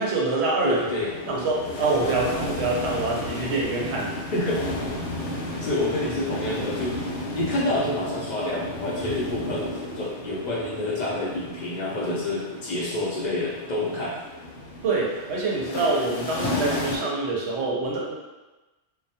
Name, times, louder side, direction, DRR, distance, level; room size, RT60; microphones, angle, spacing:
voice 1, 0.0-0.8 1.3-4.1 14.8-18.1, right 3 dB, 75° right, -3 dB, 0.8 m, -25 dB
sound 1, 0.6-17.0, left 1 dB, 80° left, 0.9 m, -33 dB
voice 2, 0.6-1.1 4.3-4.9 5.6-14.2, left 1 dB, 55° left, -5 dB, 0.5 m, -28 dB
2.2 x 2.1 x 2.7 m, 1.1 s
omnidirectional pair, 1.2 m